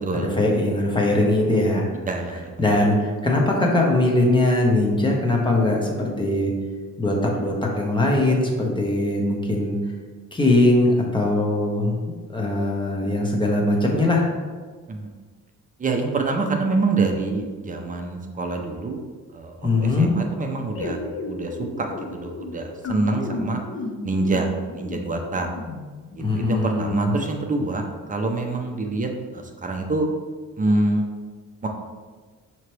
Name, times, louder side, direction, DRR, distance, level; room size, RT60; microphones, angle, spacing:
voice 1, 0.0-1.9 2.3-6.5 7.0-9.8 10.3-12.0 12.3-14.3 19.6-20.1 26.2-27.2, left 2 dB, 15° left, -1 dB, 0.8 m, -21 dB
voice 2, 2.1-2.4 14.9-15.0 15.8-19.0 19.3-21.0 21.3-21.5 21.8-23.6 24.0-24.5 24.7-25.5 26.2-27.8 28.1-29.1 29.3-30.1 30.6-31.0 31.6-31.7, right 3 dB, 25° right, 3 dB, 0.5 m, -25 dB
sound 1, 20.7-26.2, left 3 dB, 45° left, 0.6 m, -34 dB
5.6 x 2.9 x 3.2 m, 1.4 s
cardioid pair, 125°, 32 cm